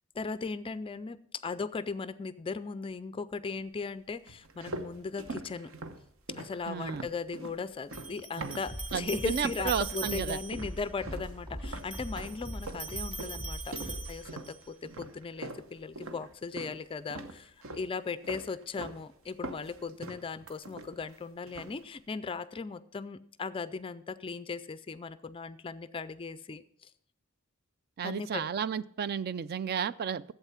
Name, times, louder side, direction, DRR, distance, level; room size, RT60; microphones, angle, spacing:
voice 1, 0.1-1.2 1.4-5.7 6.3-26.9 28.0-28.4, left 4 dB, 25° left, 15 dB, 0.3 m, -38 dB
sound 1, 4.3-9.1 9.4-10.2 10.5-16.8 17.1-17.9 18.2-19.0 19.3-21.2 21.5-21.8, right 2 dB, 65° right, 1.0 m, -43 dB
sound 2, 6.7-6.8 7.9-10.7 11.7-14.7, right 5 dB, 5° right, 0.9 m, -42 dB
voice 2, 6.7-7.1 8.4-8.6 8.9-10.4 28.0-30.3, right 7 dB, 45° right, 17 dB, 0.3 m, -33 dB
sound 3, 8.7-14.3, equal, 25° right, 3.2 m, -41 dB
11.5 x 8.0 x 5.7 m, 0.69 s
head